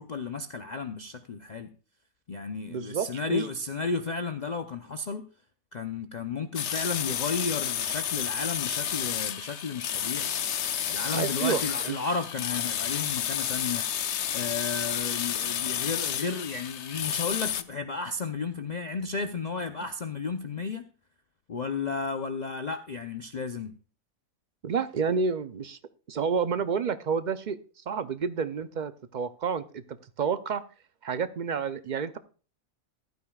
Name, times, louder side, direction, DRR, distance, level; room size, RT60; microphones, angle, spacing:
voice 1, 0.0-1.7 2.3-5.3 5.7-10.3 10.9-13.9 14.3-20.8 21.5-23.7, left 4 dB, 45° left, 0.6 m, -33 dB
voice 2, 2.7-3.5 11.1-12.0 24.6-25.8 26.1-27.6 27.9-30.6 31.0-32.2, right 6 dB, 55° right, 0.5 m, -30 dB
sound 1, 6.5-17.6, left 9 dB, 60° left, 0.9 m, -31 dB
14.5 x 12.0 x 2.3 m
omnidirectional pair, 1.4 m